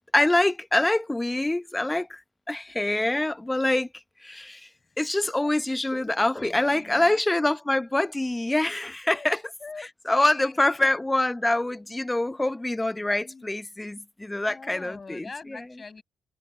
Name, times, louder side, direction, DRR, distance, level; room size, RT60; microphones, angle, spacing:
voice 1, 0.1-2.2 2.5-3.9 4.2-4.6 5.0-9.4 10.1-15.3, left 1 dB, 15° left, 1.1 m, -25 dB
voice 2, 4.6-5.0 5.4-5.8 6.0-7.2 9.0-9.3 9.6-10.9 12.3-12.4 13.2-13.4 14.5-16.0, left 4 dB, 35° left, 6.9 m, -44 dB
hypercardioid pair, 50°, 0 cm